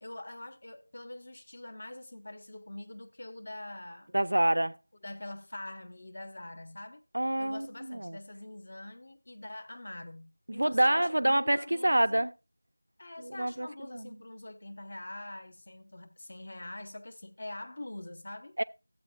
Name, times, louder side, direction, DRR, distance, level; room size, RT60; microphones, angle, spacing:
voice 1, 0.0-4.1 5.0-7.0 7.4-12.2 13.0-18.6, left 1 dB, 35° left, 0.7 m, -44 dB
voice 2, 4.1-4.8 7.1-8.2 10.5-12.3 13.2-14.2 18.6-18.7, right 1 dB, 60° right, 0.4 m, -27 dB
14.0 x 7.8 x 2.3 m
figure-of-eight pair, 175°, 0 cm